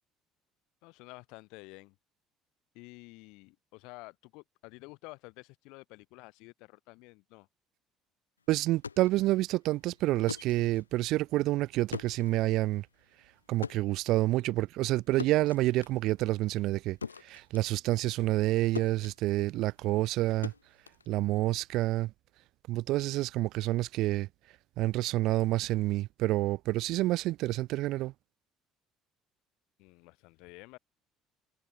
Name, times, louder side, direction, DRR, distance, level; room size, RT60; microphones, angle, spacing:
voice 1, 0.8-2.0 2.7-7.5 29.8-30.8, left 26 dB, 60° left, 5.6 m, -50 dB
voice 2, 8.5-12.9 13.5-20.5 21.1-22.1 22.7-24.3 24.8-28.1, right 17 dB, 55° right, 1.4 m, -28 dB
sound 1, 8.6-18.5 18.8-21.7, left 6 dB, 80° left, 0.8 m, -44 dB
figure-of-eight pair, 55°, 0 cm